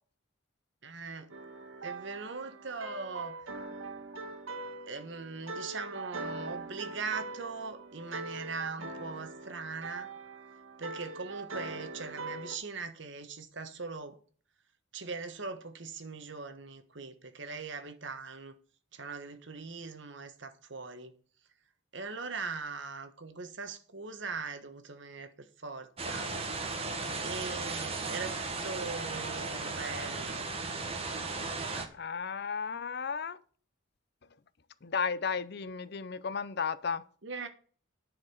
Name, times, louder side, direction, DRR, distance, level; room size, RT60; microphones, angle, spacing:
voice 1, 0.8-1.3 1.8-3.4 4.9-10.1 10.8-14.2 14.9-18.6 18.9-21.1 21.9-26.3 27.2-30.5 31.7-31.9 37.2-37.5, right 4 dB, 60° right, 1.4 m, -40 dB
sound 1, 1.3-12.6, right 3 dB, 90° right, 1.6 m, -42 dB
sound 2, 26.0-31.9, right 3 dB, 30° right, 1.5 m, -36 dB
voice 2, 31.9-33.4 34.8-37.0, left 5 dB, 50° left, 0.6 m, -34 dB
10.5 x 5.0 x 6.5 m
head